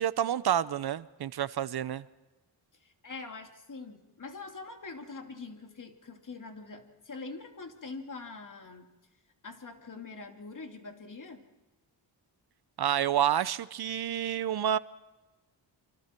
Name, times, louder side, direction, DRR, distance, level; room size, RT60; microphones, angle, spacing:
voice 1, 0.0-2.0 12.8-14.8, right 10 dB, 60° right, 16 dB, 0.7 m, -29 dB
voice 2, 2.8-8.9 9.4-11.5, left 3 dB, 45° left, 4 dB, 2.7 m, -44 dB
28.5 x 25.0 x 4.5 m, 1.1 s
cardioid pair, 75°, 44 cm